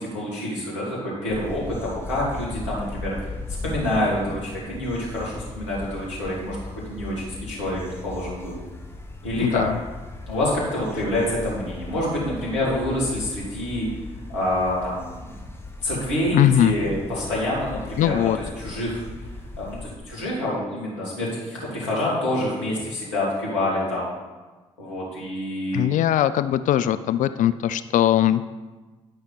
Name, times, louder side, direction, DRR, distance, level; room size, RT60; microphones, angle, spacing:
voice 1, 0.0-3.3 3.6-6.6 6.9-8.6 9.2-9.6 10.3-13.9 14.3-15.2 15.8-18.2 18.6-19.3 19.6-24.1 24.8-25.9, left 1 dB, 90° left, -6 dB, 2.4 m, -27 dB
sound 1, 1.3-19.9, left 2 dB, 15° left, 1.4 m, -38 dB
voice 2, 9.4-9.8 16.3-16.7 18.0-18.4 25.7-28.4, left 11 dB, 60° left, 13 dB, 0.4 m, -20 dB
11.5 x 5.8 x 4.0 m, 1.2 s
hypercardioid pair, 40°, 15 cm